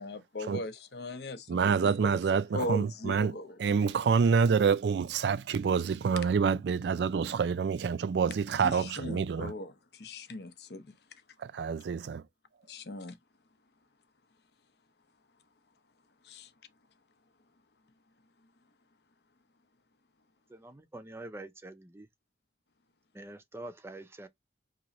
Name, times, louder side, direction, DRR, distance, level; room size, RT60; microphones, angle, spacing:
voice 1, 0.0-2.2 2.5-4.0 8.6-10.9 12.7-13.2 16.2-16.5, left 1 dB, 70° left, 0.8 m, -39 dB
voice 2, 1.5-3.3 3.6-9.5 11.4-12.2, right 6 dB, 75° right, 0.4 m, -27 dB
voice 3, 20.5-22.1 23.1-24.3, right 2 dB, 15° right, 0.5 m, -45 dB
3.0 x 2.7 x 4.0 m
head